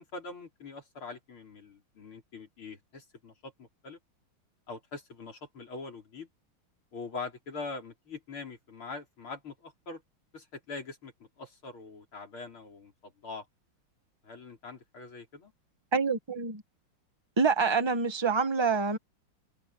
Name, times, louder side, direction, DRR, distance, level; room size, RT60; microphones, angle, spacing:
voice 1, 0.0-4.0 4.7-6.3 6.9-10.0 10.3-13.5 14.2-15.5, left 4 dB, 85° left, 5.3 m, -43 dB
voice 2, 15.9-16.6 17.4-19.0, right 5 dB, 15° right, 1.3 m, -26 dB
open air
omnidirectional pair, 2.3 m